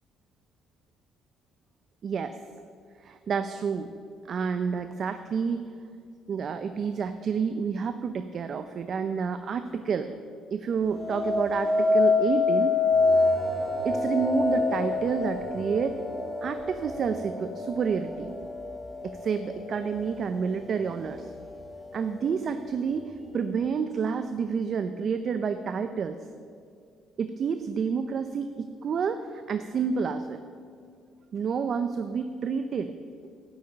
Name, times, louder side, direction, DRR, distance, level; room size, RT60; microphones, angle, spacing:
voice 1, 2.0-2.3 3.0-3.9 4.3-5.6 6.3-10.1 10.5-12.8 13.8-16.0 16.4-18.3 19.0-21.3 21.9-26.2 27.2-30.4 31.3-32.9, right 6 dB, 50° right, 9 dB, 0.6 m, -29 dB
sound 1, 10.9-20.1 20.6-21.1, left 3 dB, ahead, 1.6 m, -27 dB
11.0 x 8.1 x 9.4 m, 2.2 s
cardioid pair, 95°, 0 cm